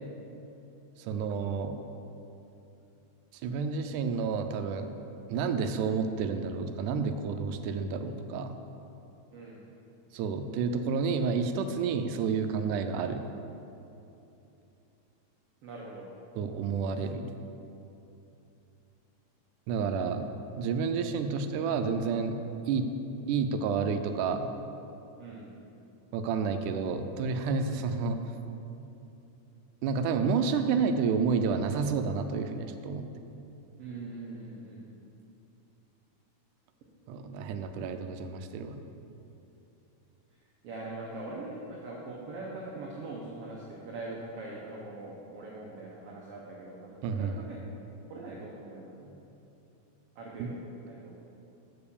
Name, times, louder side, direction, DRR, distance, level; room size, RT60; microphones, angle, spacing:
voice 1, 1.0-1.8 3.4-4.9 5.3-8.6 10.1-13.2 16.4-17.3 19.7-20.3 20.6-22.4 22.7-22.9 23.3-24.5 26.1-28.2 29.8-33.1 37.1-38.8 47.0-47.3 50.4-50.5, right 5 dB, 85° right, 7 dB, 2.1 m, -30 dB
voice 2, 9.3-9.6 15.6-16.1 25.2-25.5 27.7-27.8 33.8-34.8 40.6-47.6 48.1-49.2 50.2-50.6 50.8-51.1, right 2 dB, 65° right, -3 dB, 1.7 m, -42 dB
7.4 x 6.8 x 7.0 m, 2.9 s
omnidirectional pair, 3.5 m